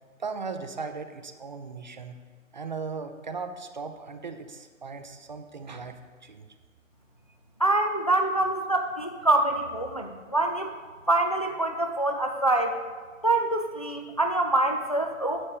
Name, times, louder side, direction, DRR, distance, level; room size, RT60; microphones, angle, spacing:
voice 1, 0.2-2.2 2.5-6.0 6.2-6.5, right 4 dB, 35° right, 7 dB, 0.5 m, -37 dB
voice 2, 7.6-10.7 11.1-12.8 13.2-15.5, right 2 dB, 30° left, 4 dB, 0.4 m, -25 dB
10.0 x 4.2 x 7.0 m, 1.5 s
figure-of-eight pair, 150°, 39 cm